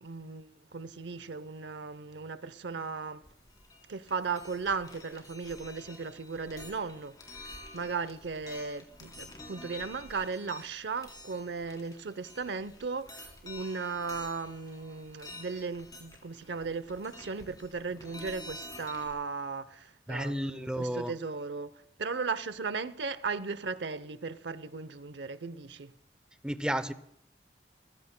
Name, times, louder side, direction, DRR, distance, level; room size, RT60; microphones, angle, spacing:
voice 1, 0.0-3.2 3.9-21.7 22.0-25.9, right 4 dB, 85° right, 0.7 m, -36 dB
sound 1, 3.2-19.1, left 2 dB, 20° left, 3.6 m, -49 dB
voice 2, 20.1-21.1 26.4-26.9, equal, 5° right, 0.6 m, -32 dB
29.0 x 16.0 x 2.2 m
head